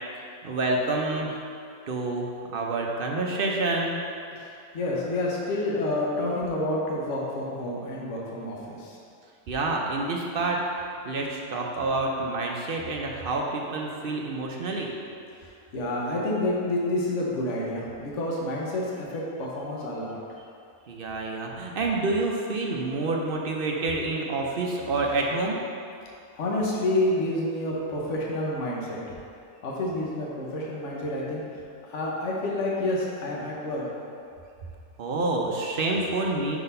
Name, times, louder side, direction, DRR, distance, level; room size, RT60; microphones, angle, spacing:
voice 1, 0.4-1.3 1.9-2.3 2.5-4.0 9.5-14.9 20.9-25.6 35.0-36.6, right 2 dB, 55° right, 0 dB, 0.6 m, -28 dB
voice 2, 4.3-9.0 15.4-20.2 26.3-29.2 29.6-31.4 31.8-33.9, left 1 dB, 55° left, -4 dB, 1.3 m, -29 dB
5.8 x 4.0 x 5.4 m, 2.5 s
omnidirectional pair, 1.5 m